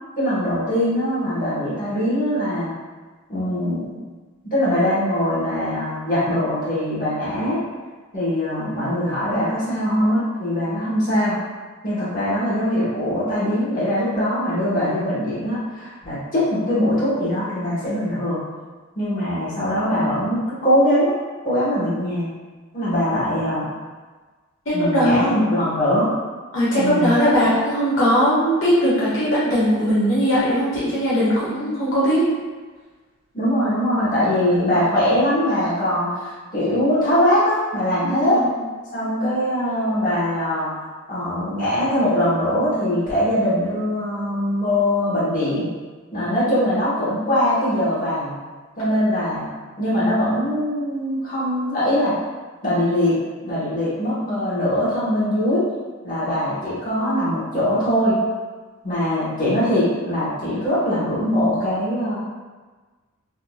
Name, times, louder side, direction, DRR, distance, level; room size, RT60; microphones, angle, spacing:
voice 1, 0.2-2.7 3.3-3.9 4.5-7.6 8.1-11.4 11.8-18.4 18.9-21.1 21.4-22.3 22.7-23.7 24.7-26.1 26.7-27.1 33.3-38.4 38.9-40.7 41.1-45.7 46.1-48.3 48.8-49.5 49.8-52.1 52.6-53.1 53.4-55.6 56.0-58.2 58.8-62.2, equal, 45° left, -11 dB, 1.3 m, -22 dB
voice 2, 24.6-25.4 26.5-32.2 38.0-38.6, equal, 75° left, -9 dB, 1.2 m, -19 dB
3.5 x 2.8 x 2.4 m, 1.4 s
head